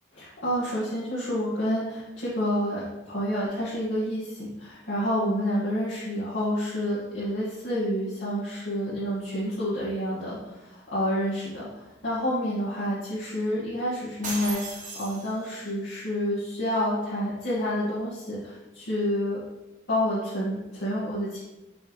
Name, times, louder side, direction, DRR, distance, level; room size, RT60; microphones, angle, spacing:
voice 1, 0.1-19.4 19.9-21.4, equal, 80° left, -10 dB, 1.9 m, -29 dB
sound 1, 14.2-15.7, right 3 dB, 40° right, 1.8 m, -36 dB
6.2 x 5.9 x 3.2 m, 1.0 s
head